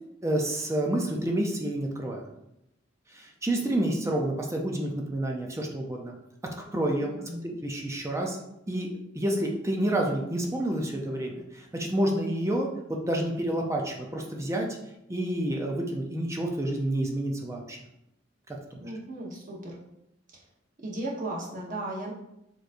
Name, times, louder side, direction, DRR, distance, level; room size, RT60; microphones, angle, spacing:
voice 1, 0.2-2.2 3.1-6.1 6.6-7.1 7.4-8.4 8.7-14.7 15.1-17.8 18.5-18.8, right 1 dB, 15° right, 1 dB, 0.5 m, -29 dB
voice 2, 7.0-7.6 18.8-19.8 20.3-20.4 20.8-22.1, right 1 dB, 45° right, -3 dB, 1.1 m, -36 dB
6.4 x 3.1 x 2.6 m, 0.84 s
head